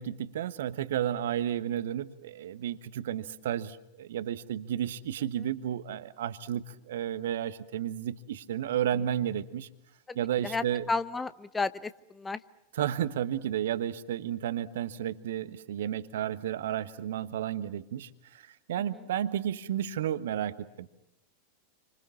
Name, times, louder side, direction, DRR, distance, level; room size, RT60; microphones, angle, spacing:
voice 1, 0.0-9.7 10.1-10.8 12.8-21.0, right 10 dB, 60° right, 13 dB, 1.3 m, -32 dB
voice 2, 10.4-12.4 18.9-19.0, left 3 dB, 15° left, 15 dB, 0.9 m, -33 dB
29.0 x 25.5 x 7.1 m, 0.87 s
figure-of-eight pair, 90°, 0 cm